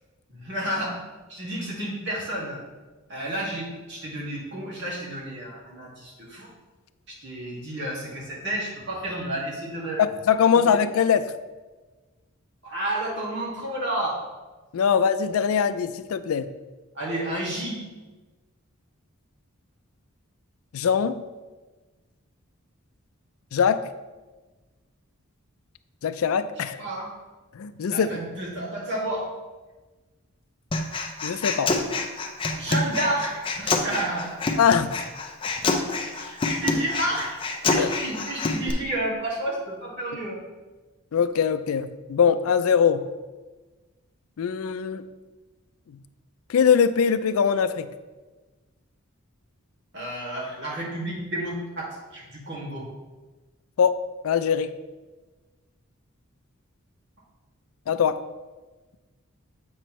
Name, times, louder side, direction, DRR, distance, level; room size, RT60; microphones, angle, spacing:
voice 1, 0.3-1.0 1.3-2.6 3.1-6.5 7.2-10.0 10.7-10.8 12.6-14.2 16.9-17.8 26.6-27.1 27.9-29.2 32.6-33.3 33.6-34.4 36.1-37.3 37.7-40.4 49.9-51.9 52.1-52.9, right 1 dB, 55° right, -5 dB, 2.1 m, -31 dB
voice 2, 10.0-11.3 14.7-16.5 20.7-21.2 23.5-23.9 26.0-26.8 27.6-28.1 31.2-31.7 34.6-35.0 35.7-35.8 37.8-37.9 41.1-43.0 44.4-45.0 46.5-47.9 53.8-54.7 57.9-58.2, left 7 dB, 75° left, 13 dB, 0.4 m, -22 dB
Human voice, 30.7-38.7, left 3 dB, 25° left, 0.5 m, -27 dB
7.8 x 6.1 x 3.1 m, 1.2 s
head